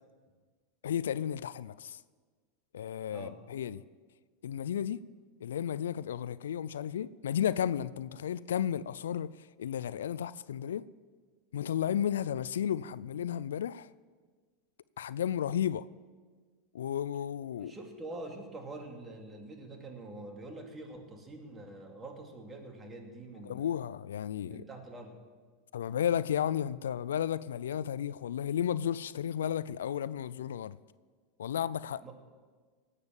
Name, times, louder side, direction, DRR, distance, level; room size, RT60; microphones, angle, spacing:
voice 1, 0.8-2.0 2.7-3.8 4.4-5.0 5.4-9.3 9.6-10.8 11.5-13.9 15.0-15.9 16.7-17.7 23.4-24.6 25.7-30.8 31.4-32.1, left 9 dB, 85° left, 0.4 m, -33 dB
voice 2, 17.6-23.7 24.4-25.2 32.0-32.1, right 2 dB, 20° right, 2.9 m, -45 dB
18.5 x 8.3 x 7.3 m
hypercardioid pair, 105°, 0 cm